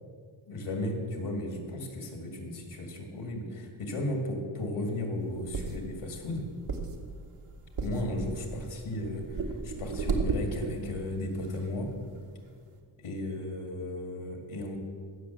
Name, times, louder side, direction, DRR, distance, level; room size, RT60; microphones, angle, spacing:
voice 1, 0.5-6.5 7.8-11.9 13.0-14.8, left 1 dB, 85° left, 3 dB, 2.3 m, -35 dB
sound 1, 5.2-10.9 11.5-11.6 11.8-12.0, right 4 dB, 90° right, 1.4 m, -34 dB
15.5 x 6.1 x 7.1 m, 2.1 s
cardioid pair, 70°, 49 cm